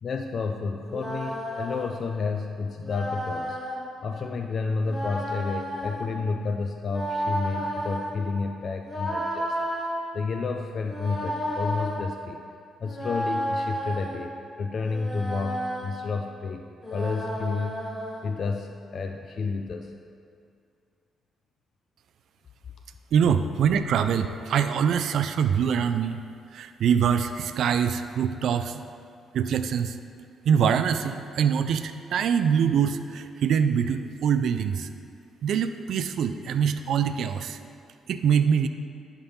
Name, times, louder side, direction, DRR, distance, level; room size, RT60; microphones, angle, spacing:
voice 1, 0.0-3.6 4.0-12.4 12.8-17.9 18.2-19.9, left 4 dB, 50° left, 4 dB, 0.4 m, -31 dB
sound 1, 0.8-1.9 2.8-3.8 4.8-6.1 6.8-8.1 8.9-9.9 10.8-12.0 12.8-14.2 14.8-15.9 16.8-18.2, equal, 15° left, 1.7 m, -32 dB
voice 2, 23.1-26.2 26.5-28.8 29.3-30.0 30.5-34.9 35.4-37.6 38.1-38.7, right 7 dB, 70° right, 9 dB, 0.3 m, -24 dB
10.5 x 3.6 x 5.4 m, 2.4 s
cardioid pair, 90°, 0 cm